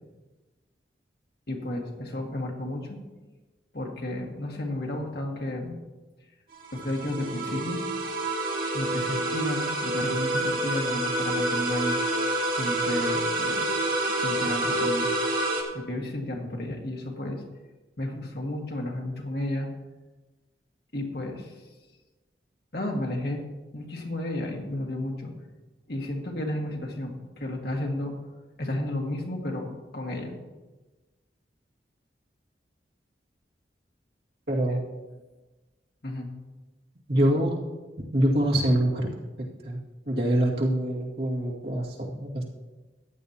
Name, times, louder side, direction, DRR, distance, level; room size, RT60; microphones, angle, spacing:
voice 1, 1.5-3.0 3.7-5.8 6.7-7.9 8.7-12.0 12.5-13.9 14.2-15.1 15.7-17.4 18.0-19.7 20.9-21.6 22.7-23.4 23.7-25.3 25.9-28.1 28.6-30.3 36.0-36.3, left 1 dB, 65° left, 0 dB, 1.8 m, -32 dB
sound 1, 6.5-15.6, right 1 dB, 55° right, 2.1 m, -27 dB
voice 2, 34.5-34.8 37.1-37.5 38.1-39.1 39.6-39.8 40.1-42.4, right 1 dB, 70° right, -4 dB, 2.2 m, -24 dB
14.5 x 9.7 x 2.9 m, 1.2 s
head